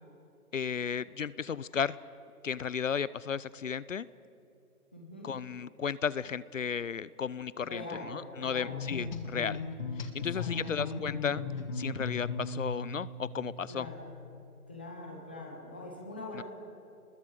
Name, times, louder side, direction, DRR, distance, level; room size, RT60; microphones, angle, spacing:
voice 1, 0.5-2.0 2.4-4.1 5.2-7.8 8.1-9.6 10.0-11.4 11.7-13.9 16.3-16.4, left 7 dB, 55° left, 19 dB, 0.7 m, -34 dB
voice 2, 4.9-5.3 7.6-8.8 10.2-11.0 13.7-14.0 14.7-16.4, left 2 dB, 5° left, -1 dB, 0.8 m, -43 dB
sound 1, 8.7-13.9, left 3 dB, 30° left, 1.7 m, -37 dB
27.0 x 21.5 x 7.9 m, 2.6 s
hypercardioid pair, 170°, 45 cm